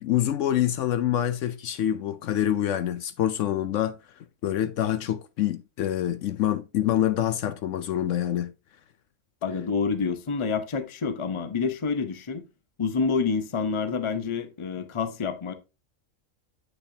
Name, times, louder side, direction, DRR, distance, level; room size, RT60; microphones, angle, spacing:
voice 1, 0.0-4.0 4.4-8.5, left 11 dB, 70° left, 0.9 m, -26 dB
voice 2, 9.4-12.4 12.8-15.5, left 5 dB, 30° left, 0.6 m, -28 dB
8.3 x 6.4 x 2.7 m
omnidirectional pair, 1.4 m